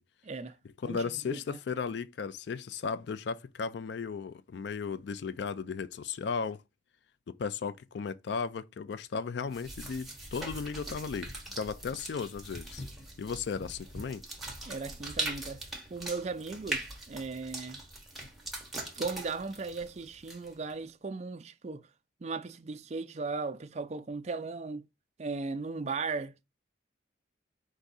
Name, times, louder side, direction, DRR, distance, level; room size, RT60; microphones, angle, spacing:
voice 1, 0.2-0.6 0.8-1.4 14.7-15.6 15.9-17.8 18.7-21.9 22.2-24.9 25.2-26.4, right 4 dB, 35° right, 0.4 m, -37 dB
voice 2, 0.8-6.6 7.3-12.8 13.2-14.2, left 5 dB, 60° left, 0.3 m, -35 dB
sound 1, 9.5-20.7, right 1 dB, ahead, 0.9 m, -41 dB
4.6 x 2.6 x 4.0 m
head